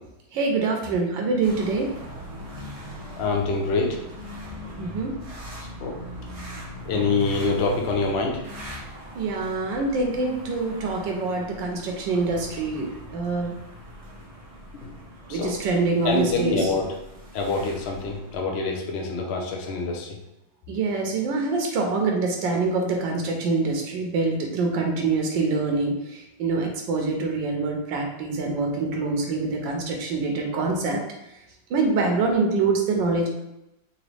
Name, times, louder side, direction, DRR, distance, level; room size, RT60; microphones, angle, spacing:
voice 1, 0.3-1.9 4.8-5.1 9.1-13.5 15.3-16.7 20.7-31.0 31.7-33.3, right 3 dB, 80° right, 1 dB, 1.4 m, -25 dB
sound 1, 1.4-18.4, equal, 45° right, 0.4 m, -40 dB
voice 2, 3.2-4.0 5.8-6.0 6.8-8.4 14.8-14.9 15.3-15.6 16.0-16.9 17.3-20.2, left 3 dB, 65° left, 1 dB, 0.6 m, -25 dB
4.0 x 3.0 x 3.2 m, 0.88 s
omnidirectional pair, 2.0 m